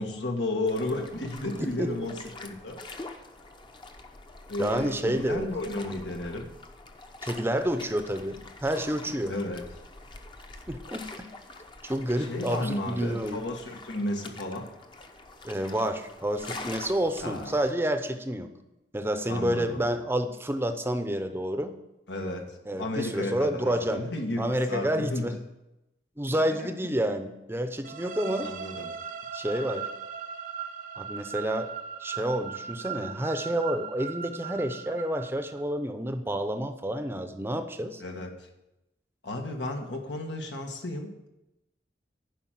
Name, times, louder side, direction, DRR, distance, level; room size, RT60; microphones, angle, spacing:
voice 1, 0.0-2.8 4.5-6.5 9.3-9.7 12.2-14.7 17.2-17.6 19.3-19.8 22.1-25.4 26.3-26.7 28.4-29.0 38.0-38.5 39.2-41.3, left 1 dB, 90° left, 3 dB, 1.6 m, -33 dB
sound 1, 0.6-17.7, left 2 dB, 25° left, 0.8 m, -45 dB
voice 2, 4.6-5.5 7.2-9.3 10.7-11.1 11.8-13.4 15.4-18.5 18.9-21.7 22.7-24.0 24.4-25.3 26.2-28.5 29.3-29.9 31.0-31.7 32.0-38.0, right 1 dB, 15° right, 8 dB, 0.6 m, -29 dB
sound 2, 27.8-35.6, right 7 dB, 50° right, 0.7 m, -38 dB
11.0 x 5.2 x 7.5 m, 0.93 s
head